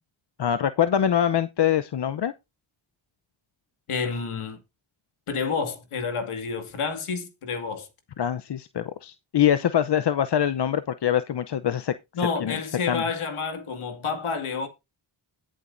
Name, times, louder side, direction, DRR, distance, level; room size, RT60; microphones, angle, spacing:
voice 1, 0.4-2.3 8.2-11.9 12.4-12.6 12.9-13.0, left 9 dB, 55° left, 0.8 m, -24 dB
voice 2, 3.9-4.6 5.3-7.9 12.1-14.7, left 5 dB, 85° left, 2.2 m, -29 dB
20.5 x 7.5 x 2.6 m
cardioid pair, 55°, 49 cm